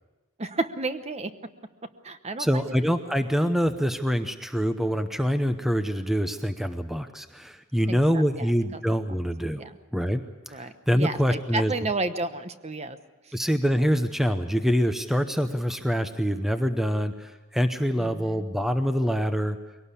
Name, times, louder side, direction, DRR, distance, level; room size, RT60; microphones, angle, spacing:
voice 1, 0.4-1.3 2.0-2.7 7.9-8.0 8.4-8.8 9.6-9.8 10.5-13.0 13.2-13.3 18.0-18.5, right 2 dB, 30° right, 10 dB, 1.0 m, -32 dB
voice 2, 2.4-9.7 9.9-11.7 13.3-19.6, equal, ahead, 8 dB, 0.8 m, -25 dB
22.5 x 18.0 x 8.4 m, 1.2 s
head